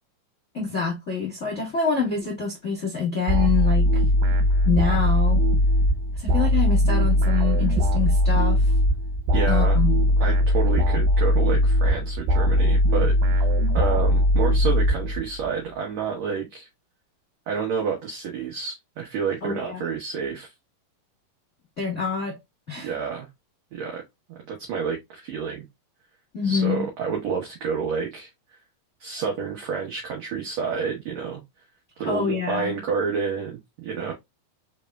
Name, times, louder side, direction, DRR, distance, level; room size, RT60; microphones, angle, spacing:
voice 1, 0.5-4.0 4.6-5.4 6.2-8.7 9.5-10.0 19.4-19.8 21.8-22.4 22.7-22.9 26.3-26.8 32.0-32.8, left 5 dB, 60° left, 0.8 m, -26 dB
sound 1, 3.3-15.5, left 1 dB, 85° right, 2.8 m, -20 dB
voice 2, 9.3-9.8 10.1-13.5 13.7-16.7 17.5-20.5 22.8-23.3 23.7-24.0 24.5-25.7 26.4-28.3 29.0-31.4 32.0-34.1, right 6 dB, 65° right, 1.9 m, -29 dB
5.3 x 3.4 x 2.2 m
omnidirectional pair, 4.1 m